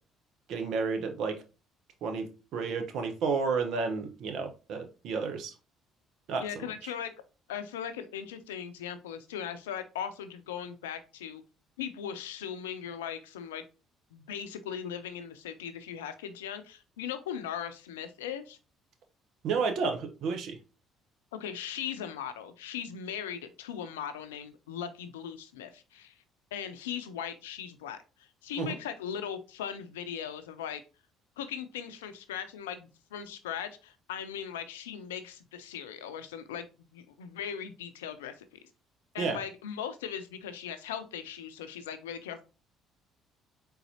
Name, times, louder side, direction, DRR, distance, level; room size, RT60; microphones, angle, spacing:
voice 1, 0.5-1.4 2.0-2.3 2.5-5.5 6.3-6.4 6.8-6.9 19.4-20.6 28.6-28.8 39.2-39.4, right 5 dB, 65° right, 6 dB, 0.8 m, -31 dB
voice 2, 6.4-7.1 7.5-11.4 11.8-13.6 14.1-18.6 21.3-26.2 26.5-30.8 31.4-38.6 39.1-42.4, left 8 dB, 85° left, 10 dB, 0.5 m, -39 dB
4.1 x 3.9 x 2.7 m, 0.32 s
hypercardioid pair, 55°, 0 cm